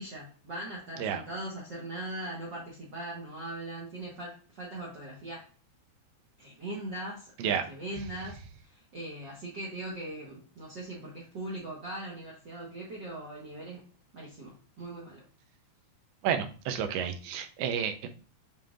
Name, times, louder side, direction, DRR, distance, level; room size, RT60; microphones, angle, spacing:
voice 1, 0.0-5.5 6.4-13.9 14.1-15.2, right 1 dB, 65° right, -4 dB, 1.0 m, -40 dB
voice 2, 16.2-18.1, right 8 dB, 85° right, 8 dB, 2.7 m, -30 dB
7.6 x 5.1 x 2.5 m, 0.39 s
omnidirectional pair, 4.3 m